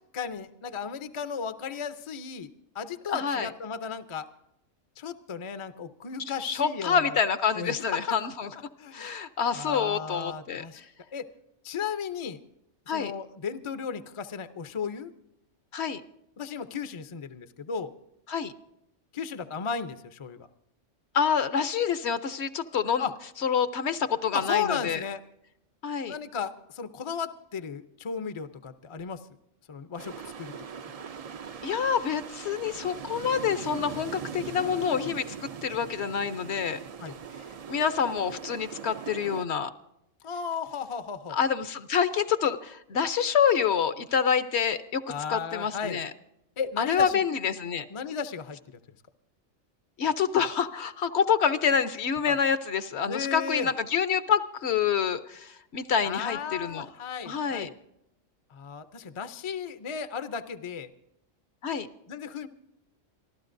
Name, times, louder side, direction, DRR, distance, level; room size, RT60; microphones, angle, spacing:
voice 1, 0.1-4.3 5.0-7.2 7.6-8.2 8.8-9.1 9.5-10.8 11.1-11.3 11.6-12.4 12.9-15.1 16.4-17.9 19.1-20.5 23.0-23.1 24.3-25.2 26.1-29.2 29.7-30.5 34.5-35.1 37.0-37.1 40.2-41.4 45.1-46.0 46.6-47.2 47.9-48.6 52.3-52.4 53.1-53.7 56.0-57.7 58.5-60.9 62.1-62.5, left 6 dB, 35° left, 10 dB, 0.5 m, -35 dB
voice 2, 3.1-3.5 6.4-8.5 8.9-10.8 12.9-13.1 15.7-16.0 18.3-18.5 21.1-23.1 23.4-25.0 25.8-26.1 31.6-35.3 35.6-36.8 37.7-39.7 41.3-45.0 45.3-46.1 46.8-47.8 50.0-56.9 57.3-57.7 61.6-61.9, left 7 dB, 65° left, 11 dB, 1.0 m, -27 dB
sound 1, 30.0-39.5, right 7 dB, 50° right, 0.4 m, -40 dB
27.0 x 12.5 x 2.6 m, 0.80 s
omnidirectional pair, 1.3 m